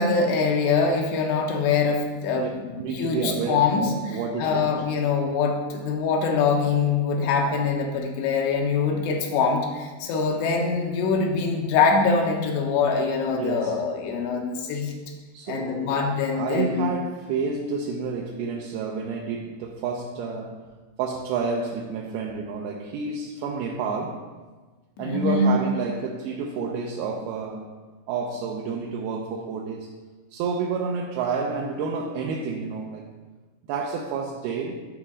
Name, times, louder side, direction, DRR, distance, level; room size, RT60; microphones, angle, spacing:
voice 1, 0.0-14.9 15.5-16.9 25.0-25.6, left 4 dB, 85° left, 1 dB, 3.1 m, -24 dB
voice 2, 2.8-4.8 13.3-13.8 15.3-16.1 16.3-20.6 21.0-24.3 25.0-27.7 28.1-29.9 30.3-33.0 33.7-34.9, right 5 dB, 80° right, 0 dB, 2.4 m, -29 dB
12.5 x 4.9 x 3.7 m, 1.3 s
omnidirectional pair, 4.9 m